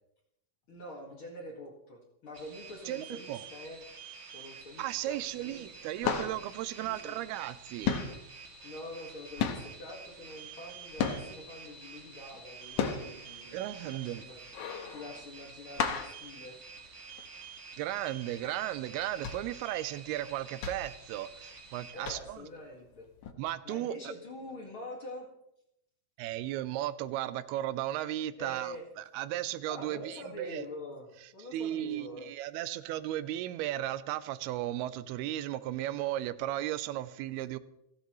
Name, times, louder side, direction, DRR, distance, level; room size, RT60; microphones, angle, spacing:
voice 1, 0.7-3.8 4.3-5.7 6.8-7.2 8.6-14.5 14.9-16.6 21.9-23.1 23.6-25.3 28.4-28.9 29.7-31.1 31.3-32.3, left 1 dB, 40° left, 2.2 m, -45 dB
sound 1, 2.3-21.9, right 5 dB, 45° right, 2.9 m, -49 dB
voice 2, 2.9-3.4 4.8-7.9 13.5-14.2 17.8-22.4 23.4-24.1 26.2-30.7 31.5-37.6, right 13 dB, 90° right, 2.7 m, -35 dB
sound 2, 4.9-5.4 5.6-7.6 7.8-11.6 12.0-17.3 17.7-17.8 18.1-18.4 18.9-21.7 22.0-22.5 23.2-23.3, left 7 dB, 65° left, 2.3 m, -34 dB
29.0 x 10.5 x 3.1 m
omnidirectional pair, 4.4 m